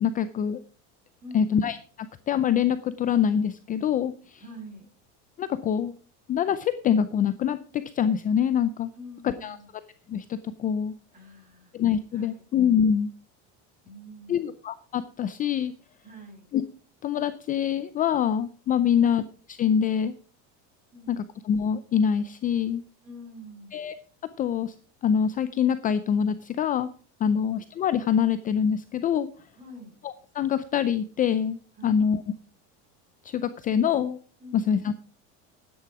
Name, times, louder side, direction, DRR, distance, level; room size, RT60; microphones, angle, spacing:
voice 1, 0.0-0.6 1.3-4.4 5.4-5.9 6.3-8.9 9.2-9.6 10.1-10.9 11.7-13.1 14.3-15.7 16.5-16.6 17.0-19.2 19.5-20.1 21.1-22.8 23.7-23.9 24.4-24.7 25.0-26.9 27.2-29.3 30.0-32.2 33.2-34.2 34.5-34.9, left 8 dB, 25° left, 13 dB, 0.5 m, -25 dB
voice 2, 1.2-1.5 4.4-4.8 8.9-9.7 11.1-11.7 12.1-12.5 13.8-14.5 16.0-16.5 20.9-21.1 23.0-23.8 27.3-27.4 29.6-30.0 31.8-32.0 34.4-34.7, equal, 25° right, 2 dB, 6.0 m, -45 dB
12.0 x 9.8 x 4.8 m, 0.39 s
cardioid pair, 150°, 34 cm